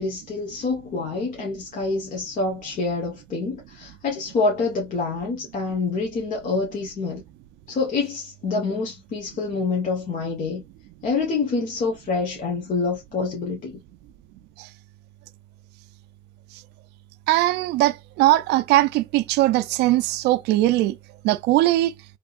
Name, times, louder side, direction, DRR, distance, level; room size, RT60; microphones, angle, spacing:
voice 1, 0.0-7.2 7.7-10.6 11.0-13.8, left 4 dB, 50° left, 1.2 m, -26 dB
voice 2, 17.3-21.0 21.2-21.9, right 16 dB, 85° right, 0.4 m, -20 dB
3.6 x 2.9 x 2.4 m
cardioid pair, 110°, 17 cm